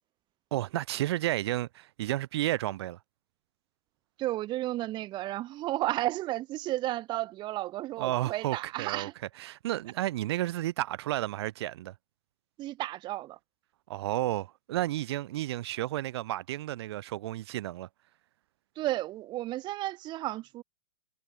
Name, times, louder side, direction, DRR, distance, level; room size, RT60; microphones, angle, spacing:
voice 1, 0.5-3.0 8.0-9.1 9.4-11.9 13.9-17.9, right 15 dB, 60° right, 1.3 m, -32 dB
voice 2, 4.2-9.1 12.6-13.4 18.8-20.6, right 16 dB, 30° right, 1.1 m, -33 dB
hypercardioid pair, 125°, 16 cm